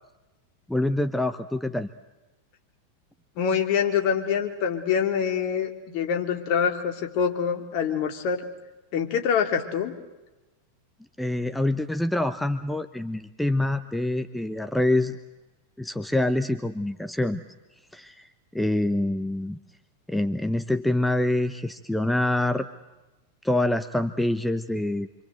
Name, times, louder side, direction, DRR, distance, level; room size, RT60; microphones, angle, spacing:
voice 1, 0.7-1.9 11.2-15.2 15.8-17.4 17.9-18.3 18.5-19.6 20.1-22.7 23.4-25.1, left 1 dB, 5° left, 9 dB, 0.9 m, -25 dB
voice 2, 3.4-8.4 8.9-9.9, left 7 dB, 45° left, 4 dB, 3.2 m, -25 dB
27.5 x 25.5 x 7.9 m, 1.1 s
figure-of-eight pair, 90°, 0 cm